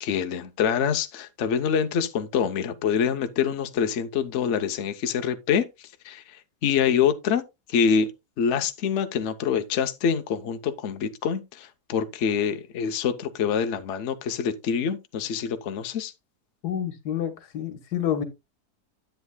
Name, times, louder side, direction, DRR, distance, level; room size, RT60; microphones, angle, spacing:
voice 1, 0.0-7.4 7.7-8.1 8.4-16.1, left 7 dB, 55° left, 1.0 m, -26 dB
voice 2, 16.6-18.2, left 9 dB, 85° left, 1.7 m, -28 dB
10.5 x 8.2 x 2.2 m
omnidirectional pair, 1.7 m